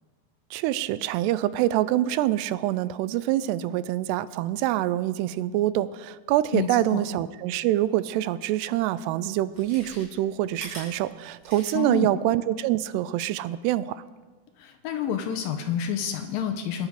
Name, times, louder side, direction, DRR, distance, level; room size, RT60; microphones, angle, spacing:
voice 1, 0.5-14.0, right 14 dB, 90° right, 16 dB, 2.7 m, -25 dB
voice 2, 6.5-7.0 11.7-12.1 14.6-16.9, left 8 dB, 75° left, 6 dB, 2.4 m, -29 dB
Chewing mastication, 8.6-8.7 9.4-12.1 12.4-12.5, right 1 dB, 25° right, 4.6 m, -43 dB
21.5 x 10.5 x 5.0 m, 1.4 s
omnidirectional pair, 4.7 m